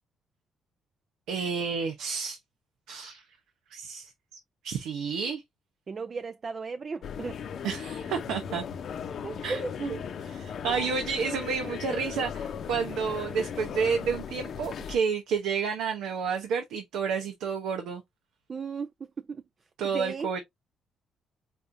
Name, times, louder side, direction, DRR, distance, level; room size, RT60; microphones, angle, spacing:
voice 1, 1.3-2.4 2.9-3.2 3.7-4.1 4.6-5.4 7.6-8.7 9.4-10.0 10.3-18.0 19.8-20.4, right 6 dB, 90° right, 0.8 m, -30 dB
voice 2, 5.9-7.4 8.1-8.2 9.2-10.1 18.5-18.9 19.2-19.4 19.9-20.3, right 5 dB, 40° right, 0.4 m, -35 dB
sound 1, 7.0-15.0, left 7 dB, 60° left, 0.7 m, -37 dB
4.3 x 3.5 x 2.6 m
cardioid pair, 90°, 0 cm